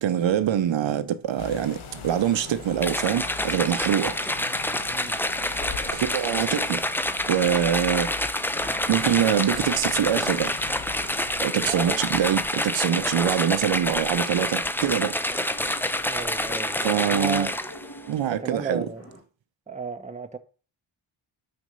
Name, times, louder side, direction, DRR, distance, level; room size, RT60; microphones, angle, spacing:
voice 1, 0.0-4.2 5.9-6.8 7.3-8.1 8.9-10.6 11.4-15.1 16.8-17.5 18.1-18.9, right 10 dB, 65° right, 0.7 m, -24 dB
sound 1, 1.4-12.5, left 7 dB, 85° left, 1.2 m, -41 dB
sound 2, 2.8-17.9, left 1 dB, 5° left, 0.4 m, -27 dB
sound 3, 4.2-19.2, equal, 30° left, 2.0 m, -47 dB
voice 2, 11.6-12.2 16.0-17.5 18.4-19.1 19.7-20.4, right 4 dB, 15° right, 0.8 m, -34 dB
6.2 x 5.1 x 6.6 m
wide cardioid pair, 130°, 48 cm